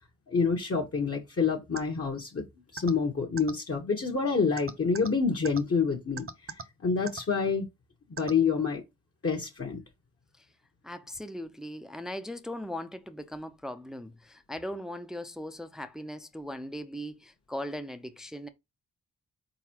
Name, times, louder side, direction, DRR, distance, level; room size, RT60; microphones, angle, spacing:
voice 1, 0.3-2.4 2.7-6.3 6.8-7.7 8.1-8.8 9.2-9.8, left 5 dB, 40° left, 1.2 m, -27 dB
sound 1, 1.8-1.9 2.8-2.9 3.4-3.5 4.6-5.1 5.5-5.6 6.2-6.6 7.1-7.2 8.2-8.3, right 5 dB, 35° right, 0.8 m, -37 dB
voice 2, 10.8-18.5, equal, ahead, 0.6 m, -39 dB
4.1 x 3.9 x 2.9 m
supercardioid pair, 40°, 36 cm